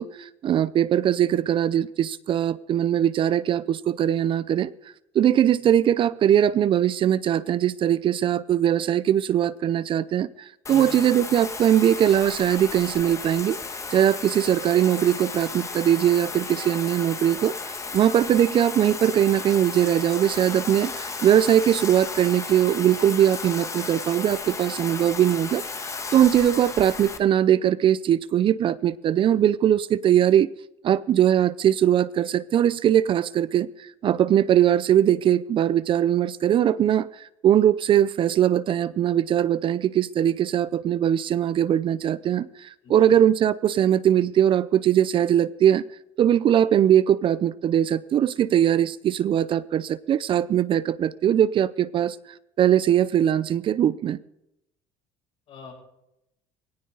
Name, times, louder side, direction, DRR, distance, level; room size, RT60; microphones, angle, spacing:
voice 1, 0.0-4.7 5.1-13.6 13.9-30.5 30.8-45.8 46.2-52.2 52.6-54.2, right 10 dB, 45° right, 17 dB, 0.6 m, -21 dB
Bathtub (filling or washing), 10.6-27.2, left 4 dB, 25° left, 1.5 m, -34 dB
voice 2, 10.7-11.0 42.8-43.1 55.5-55.7, left 4 dB, 60° left, -1 dB, 7.2 m, -41 dB
18.0 x 17.5 x 3.9 m, 0.86 s
supercardioid pair, 90°, 12 cm